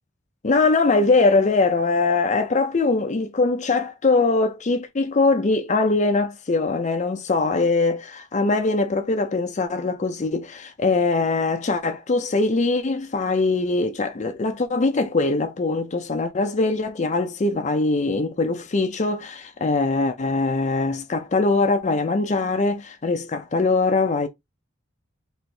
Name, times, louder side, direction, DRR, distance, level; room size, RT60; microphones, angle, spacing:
voice 1, 0.4-24.3, left 3 dB, 35° left, 0.5 m, -22 dB
4.3 x 2.5 x 3.3 m
head